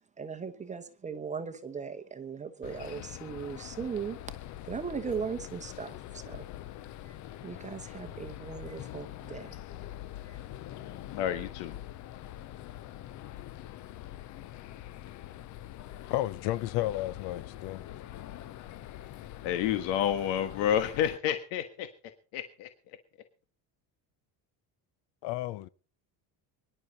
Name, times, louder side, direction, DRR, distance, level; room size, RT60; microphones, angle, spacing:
voice 1, 0.0-4.2 4.7-6.4 7.0-7.1 7.4-9.6 10.3-10.4 10.8-10.9, right 6 dB, 15° right, 0.9 m, -38 dB
sound 1, 2.6-21.2, left 13 dB, 40° left, 0.6 m, -44 dB
voice 2, 11.1-11.8 19.4-21.9 22.3-22.7, left 10 dB, 90° left, 1.6 m, -29 dB
voice 3, 16.1-17.8 25.2-25.7, left 15 dB, 70° left, 0.8 m, -32 dB
23.5 x 11.0 x 4.1 m
cardioid pair, 175°, 43 cm